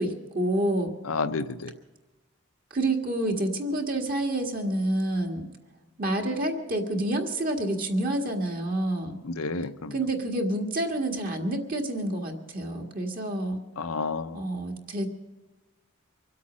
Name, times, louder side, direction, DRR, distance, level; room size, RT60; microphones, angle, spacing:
voice 1, 0.0-0.9 2.7-5.5 6.0-9.2 9.9-13.6 14.3-15.1, right 1 dB, 40° right, 2 dB, 1.7 m, -28 dB
voice 2, 1.0-1.7 9.2-9.9 13.8-14.4, left 4 dB, 75° left, 11 dB, 0.7 m, -30 dB
24.5 x 8.4 x 6.2 m, 1.2 s
head